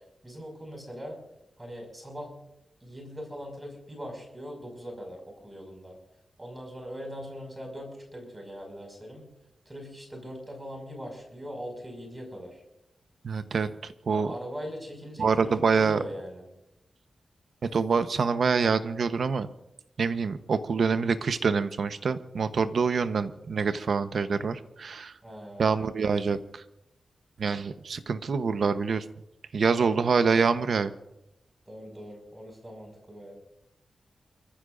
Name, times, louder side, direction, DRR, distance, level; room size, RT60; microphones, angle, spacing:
voice 1, 0.2-1.2 1.6-2.3 2.8-6.0 6.4-9.3 9.7-12.6 14.1-16.5 25.2-25.8 29.7-30.0 31.7-33.4, equal, 20° right, 1 dB, 6.0 m, -41 dB
voice 2, 13.2-14.3 15.2-16.0 17.7-19.5 20.0-25.1 25.6-26.6 27.4-29.0 29.5-30.9, right 5 dB, 75° right, 10 dB, 1.0 m, -26 dB
29.0 x 15.0 x 2.6 m, 0.87 s
cardioid pair, 70°, 0 cm